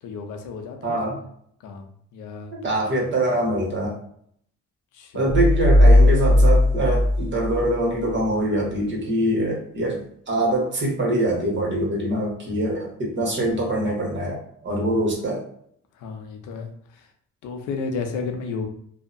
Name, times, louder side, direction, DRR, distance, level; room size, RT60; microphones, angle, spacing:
voice 1, 0.0-1.0 1.6-2.5 4.9-5.3 15.9-17.1 17.4-18.7, left 4 dB, 85° left, 4 dB, 0.6 m, -33 dB
voice 2, 0.8-1.2 2.6-4.0 5.1-15.4, right 1 dB, 40° right, -2 dB, 1.1 m, -24 dB
sound 1, 5.3-8.2, left 1 dB, 25° left, 0.5 m, -17 dB
2.7 x 2.1 x 2.5 m, 0.64 s
cardioid pair, 90°, 30 cm